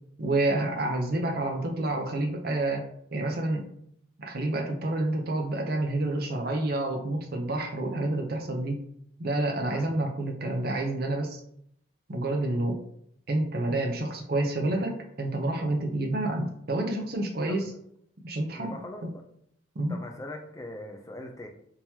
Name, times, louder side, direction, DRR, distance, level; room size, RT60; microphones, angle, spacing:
voice 1, 0.2-2.8 3.1-3.7 4.2-8.8 9.2-11.4 12.1-12.8 13.3-17.7 18.2-18.8 19.8-19.9, right 2 dB, 50° right, 2 dB, 0.6 m, -28 dB
voice 2, 9.7-10.0 17.5-17.6 18.5-19.2 19.9-21.5, left 1 dB, 15° left, 3 dB, 0.4 m, -41 dB
3.7 x 2.9 x 2.8 m, 0.70 s
head